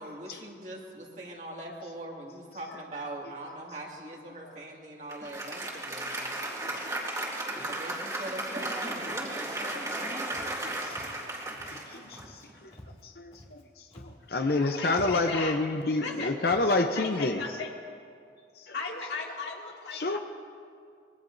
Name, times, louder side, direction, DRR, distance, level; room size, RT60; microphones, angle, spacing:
voice 1, 0.0-7.0 7.6-9.2 9.6-10.1, right 1 dB, 40° right, -1 dB, 2.2 m, -42 dB
Applause, 5.1-12.7, right 1 dB, 20° right, 2.2 m, -35 dB
voice 2, 6.6-7.5 9.1-9.9 10.4-11.1 11.7-12.8 13.0-17.4 18.6-18.7 19.9-20.2, left 2 dB, 60° left, 5 dB, 0.7 m, -30 dB
Walk footsteps, 10.3-10.6 10.9-11.2 11.5-11.8 12.1-12.4 12.7-13.6 13.9-14.3 14.6-14.7 14.9-15.4 16.0-16.1 16.4-16.7, equal, 35° left, 2.2 m, -49 dB
voice 3, 14.5-15.6 16.0-16.3 16.9-17.7 18.7-20.2, left 4 dB, 85° left, -1 dB, 2.4 m, -36 dB
25.0 x 21.5 x 2.7 m, 2.3 s
head